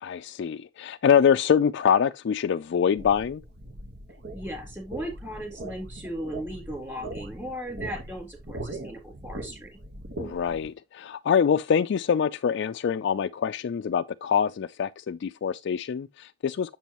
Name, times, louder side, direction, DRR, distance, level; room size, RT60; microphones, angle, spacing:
voice 1, 0.0-3.4 10.2-16.8, left 7 dB, 60° left, 0.3 m, -24 dB
sound 1, 3.0-10.7, right 2 dB, 55° right, 1.2 m, -40 dB
voice 2, 4.3-9.7, equal, 15° right, 3.6 m, -37 dB
7.4 x 7.0 x 2.9 m
head